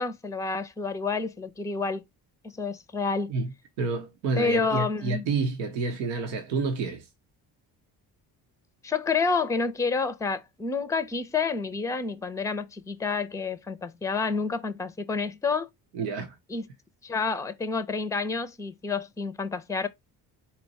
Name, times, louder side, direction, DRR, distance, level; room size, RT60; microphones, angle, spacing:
voice 1, 0.0-2.0 2.4-3.3 4.4-5.3 8.8-15.7 16.5-16.7 17.0-19.9, left 4 dB, 5° left, 0.5 m, -29 dB
voice 2, 3.8-7.1 15.9-16.4, right 4 dB, 90° right, 0.8 m, -29 dB
4.1 x 2.2 x 4.0 m
hypercardioid pair, 55°, 46 cm